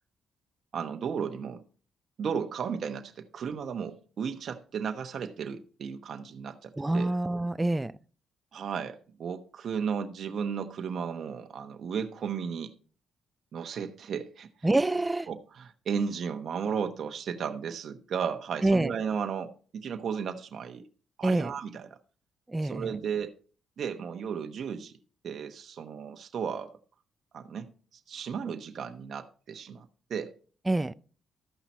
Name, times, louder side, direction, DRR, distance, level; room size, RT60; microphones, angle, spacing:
voice 1, 0.7-1.6 2.2-7.1 8.5-12.7 13.5-14.7 15.3-20.8 21.2-21.9 22.6-23.3 23.8-24.9 25.2-26.7 27.3-27.7 28.1-30.3, right 6 dB, 60° right, 1.0 m, -34 dB
voice 2, 6.8-7.9 14.6-15.3 18.6-18.9 21.2-21.5 22.5-22.9 30.7-30.9, right 2 dB, 15° right, 0.4 m, -26 dB
13.5 x 5.8 x 4.2 m
cardioid pair, 90°, 0 cm